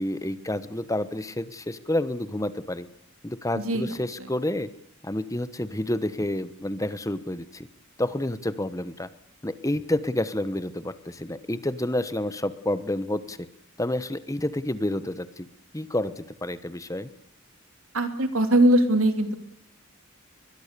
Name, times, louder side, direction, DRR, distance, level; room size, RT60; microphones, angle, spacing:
voice 1, 0.0-2.9 3.2-4.7 5.0-7.7 8.0-9.1 9.4-13.4 13.8-15.5 15.7-17.1, left 1 dB, 15° left, 13 dB, 1.1 m, -29 dB
voice 2, 3.6-3.9 17.9-19.4, right 1 dB, 90° right, 8 dB, 3.0 m, -21 dB
22.0 x 22.0 x 6.8 m, 0.69 s
head